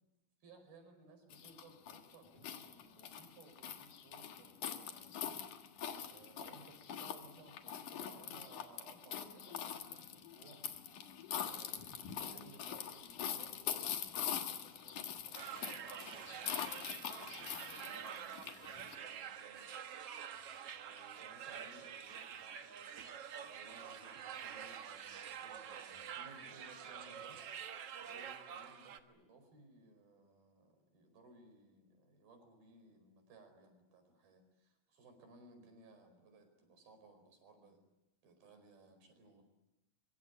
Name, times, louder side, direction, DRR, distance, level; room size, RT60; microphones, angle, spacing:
voice 1, 0.4-5.2 6.1-10.6 11.4-20.3 20.7-22.7 23.4-27.4 28.0-37.8 38.2-39.4, right 3 dB, 80° right, 7 dB, 6.7 m, -61 dB
sound 1, 1.3-19.0, left 9 dB, 60° left, 2.9 m, -44 dB
sound 2, 15.3-29.0, right 8 dB, 60° right, 1.7 m, -47 dB
24.5 x 23.5 x 9.6 m, 0.94 s
omnidirectional pair, 4.3 m